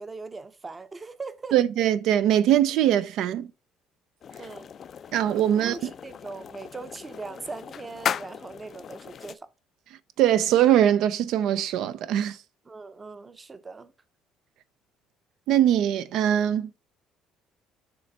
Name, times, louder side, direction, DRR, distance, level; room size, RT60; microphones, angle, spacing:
voice 1, 0.0-1.5 4.4-4.7 5.6-9.5 12.7-13.9, right 3 dB, 20° right, 0.7 m, -40 dB
voice 2, 1.5-3.5 5.1-5.9 10.2-12.4 15.5-16.7, right 11 dB, 70° right, 0.4 m, -22 dB
sound 1, 4.2-9.3, left 8 dB, 45° left, 0.3 m, -36 dB
6.9 x 3.3 x 5.2 m
cardioid pair, 120°, 0 cm